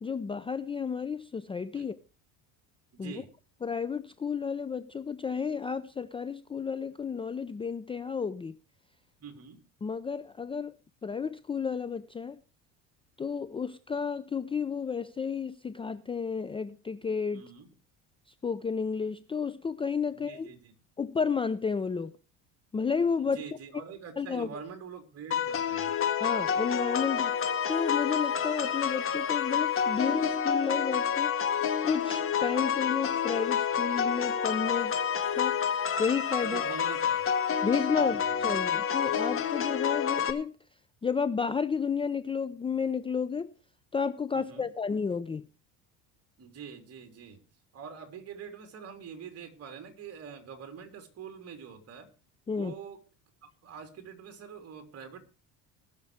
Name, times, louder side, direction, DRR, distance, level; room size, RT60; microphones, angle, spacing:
voice 1, 0.0-2.0 3.0-3.1 3.6-8.6 9.8-10.7 11.0-12.4 13.2-17.4 18.4-20.5 21.0-22.1 22.7-23.4 24.2-24.5 26.2-27.3 27.7-31.3 31.8-34.9 35.3-35.6 36.0-36.7 37.6-40.6 41.0-43.5 43.9-45.5 52.5-52.7, left 6 dB, 15° left, 0.5 m, -31 dB
voice 2, 2.9-3.3 9.2-9.6 17.3-17.7 20.1-20.7 23.2-26.0 36.4-37.3 37.9-38.6 44.3-44.7 46.4-47.5 47.7-52.1 52.5-53.0 53.4-55.2, right 7 dB, 40° right, 3.4 m, -45 dB
sound 1, 25.3-40.3, left 7 dB, 35° left, 1.7 m, -28 dB
20.0 x 6.7 x 4.9 m
supercardioid pair, 110°, 37 cm